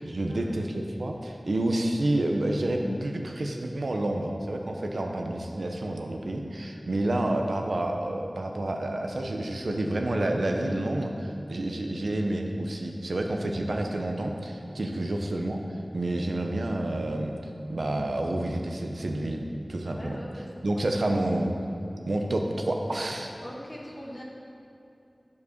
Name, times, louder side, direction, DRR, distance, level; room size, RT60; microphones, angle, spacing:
voice 1, 0.0-15.6 15.9-17.3 17.7-19.4 19.7-20.2 20.6-21.5 22.0-23.3, right 1 dB, 90° right, 2 dB, 0.8 m, -29 dB
voice 2, 2.8-3.2 6.9-7.0 14.8-15.0 16.0-16.1 19.8-20.5 23.4-24.2, left 1 dB, 35° left, -3 dB, 1.5 m, -41 dB
8.5 x 4.8 x 6.4 m, 2.8 s
wide cardioid pair, 50°, 0 cm